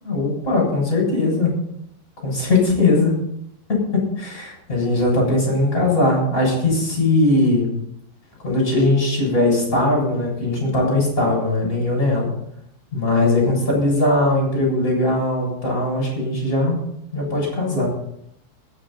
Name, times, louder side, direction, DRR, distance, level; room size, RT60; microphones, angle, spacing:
voice 1, 0.0-1.5 2.2-3.2 3.7-3.8 4.2-7.7 8.4-12.3 12.9-16.8 17.1-17.9, left 2 dB, 15° left, -2 dB, 7.4 m, -19 dB
22.0 x 9.3 x 4.4 m, 0.74 s
omnidirectional pair, 5.3 m